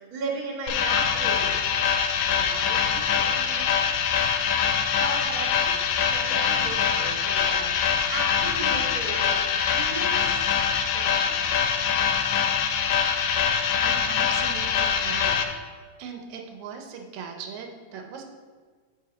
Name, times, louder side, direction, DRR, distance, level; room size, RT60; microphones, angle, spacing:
voice 1, 0.0-1.5 2.3-3.8 5.0-7.7 8.1-9.4 9.7-10.5 10.9-11.6, right 2 dB, 45° right, -2 dB, 1.2 m, -36 dB
sound 1, 0.7-15.4, left 7 dB, 90° left, 2.0 m, -24 dB
voice 2, 13.8-15.6 16.0-18.2, right 6 dB, 80° right, 3 dB, 2.0 m, -39 dB
5.6 x 4.6 x 4.9 m, 1.5 s
omnidirectional pair, 3.3 m